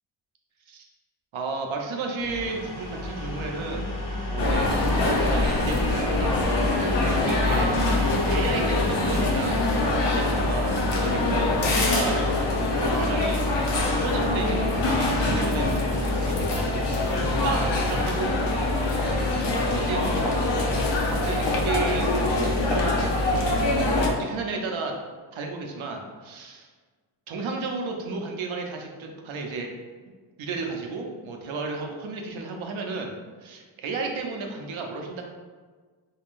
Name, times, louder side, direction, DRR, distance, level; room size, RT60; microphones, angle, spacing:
voice 1, 1.3-3.9 4.2-6.4 7.0-7.7 8.3-12.2 12.8-13.5 13.9-16.9 17.4-18.4 19.6-20.0 21.0-22.6 24.0-24.9 25.3-26.7 27.3-29.7 30.4-33.1 33.4-35.2, right 4 dB, 75° right, 2 dB, 0.7 m, -33 dB
sound 1, 2.2-13.8, left 1 dB, 40° left, 1.3 m, -32 dB
sound 2, 4.4-24.1, left 2 dB, 60° left, 0.7 m, -24 dB
3.6 x 2.3 x 2.5 m, 1.5 s
cardioid pair, 45°, 48 cm